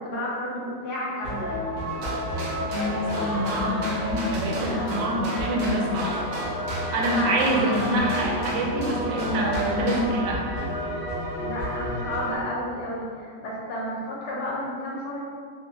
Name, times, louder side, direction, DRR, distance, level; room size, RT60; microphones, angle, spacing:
voice 1, 0.0-1.6 7.1-7.3 11.4-15.2, left 1 dB, 70° left, -5 dB, 1.3 m, -31 dB
sound 1, 1.2-12.4, equal, 50° left, 1.0 m, -31 dB
sound 2, 1.9-10.0, right 1 dB, 65° right, 1.1 m, -34 dB
voice 2, 2.7-6.2 6.9-10.7, right 1 dB, 90° right, -1 dB, 1.3 m, -26 dB
3.1 x 2.6 x 2.7 m, 2.1 s
omnidirectional pair, 1.9 m